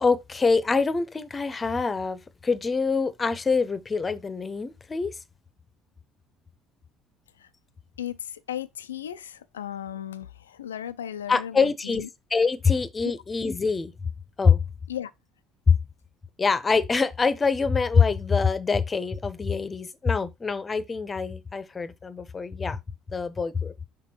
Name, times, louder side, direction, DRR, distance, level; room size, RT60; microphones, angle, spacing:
voice 1, 0.0-5.1 11.3-12.0 12.3-13.9 14.4-14.6 15.7-15.8 16.4-22.8 23.1-23.7, left 5 dB, 25° left, 0.8 m, -24 dB
voice 2, 8.0-12.1 14.9-15.1, left 10 dB, 80° left, 0.4 m, -36 dB
6.0 x 3.7 x 4.4 m
figure-of-eight pair, 55°, 0 cm